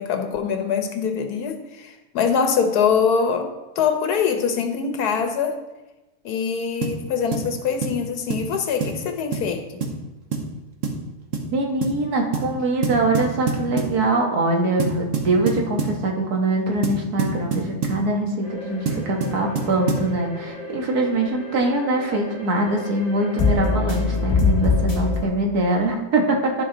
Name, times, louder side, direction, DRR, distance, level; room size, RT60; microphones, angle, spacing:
voice 1, 0.0-5.6 6.2-9.6, left 6 dB, 90° left, 6 dB, 1.4 m, -23 dB
sound 1, 6.8-7.0 7.3-7.5 7.8-8.0 8.3-8.5 8.8-9.0 9.3-9.5 9.8-10.0 10.3-10.5 10.8-11.0 11.3-11.5 11.8-12.0 12.3-12.5 12.8-14.0 14.8-16.0 16.8-18.0 18.9-20.1, right 4 dB, 60° right, 1.3 m, -26 dB
voice 2, 11.5-26.6, right 2 dB, 80° right, 1 dB, 1.8 m, -23 dB
sound 2, 18.4-25.2, left 4 dB, 25° left, 1.8 m, -25 dB
11.5 x 5.3 x 3.8 m, 1.1 s
omnidirectional pair, 1.6 m